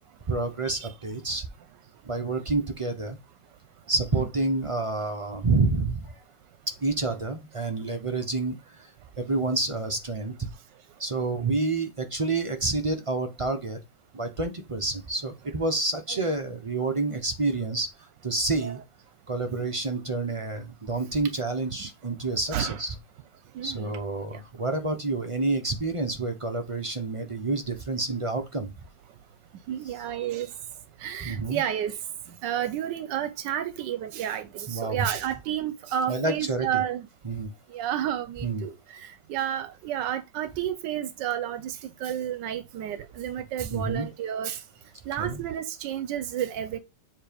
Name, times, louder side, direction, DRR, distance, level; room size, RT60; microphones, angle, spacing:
voice 1, 0.3-1.5 2.0-3.2 3.9-6.2 6.7-8.8 9.2-10.5 11.0-13.8 14.1-17.9 18.2-18.8 19.3-22.9 23.6-28.7 31.2-31.6 34.7-35.1 36.1-36.8 37.2-37.5 38.4-38.7 43.7-44.1 45.2-45.4, right 3 dB, 35° right, 0.5 m, -28 dB
voice 2, 23.5-23.9 24.3-24.4 29.7-30.5 31.0-32.0 32.4-37.1 37.7-44.6 45.1-46.8, right 10 dB, 85° right, 1.3 m, -31 dB
7.4 x 3.0 x 5.1 m
omnidirectional pair, 1.9 m